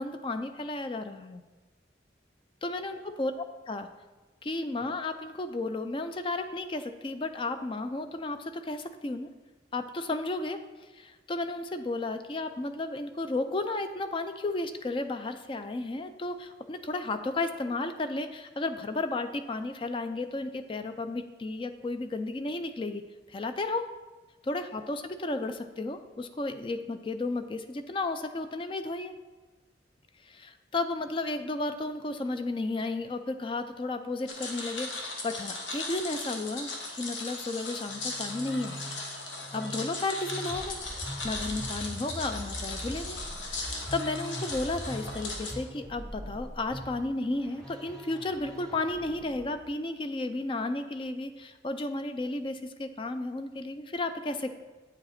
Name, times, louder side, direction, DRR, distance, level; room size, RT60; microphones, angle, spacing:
voice 1, 0.0-1.4 2.6-3.9 4.4-9.3 9.7-23.0 23.3-23.9 24.5-29.1 30.2-38.8 39.5-40.8 41.2-43.2 43.5-54.5, left 2 dB, 30° left, 9 dB, 0.4 m, -33 dB
sound 1, 34.3-45.5, left 2 dB, 85° left, 1.2 m, -38 dB
Musical instrument, 37.9-49.7, equal, 5° left, 1.5 m, -42 dB
8.6 x 5.2 x 4.2 m, 1.2 s
head